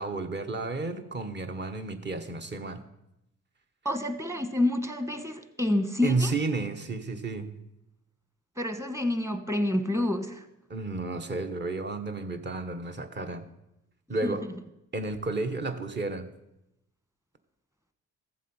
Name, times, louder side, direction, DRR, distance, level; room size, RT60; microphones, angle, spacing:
voice 1, 0.0-2.8 6.0-7.5 10.7-13.5 14.1-14.5 14.9-16.3, right 3 dB, 35° right, 7 dB, 1.3 m, -32 dB
voice 2, 3.8-6.3 8.6-10.4 14.2-14.4, left 1 dB, 10° right, 8 dB, 1.3 m, -28 dB
14.5 x 7.5 x 5.6 m, 0.87 s
cardioid pair, 90°, 30 cm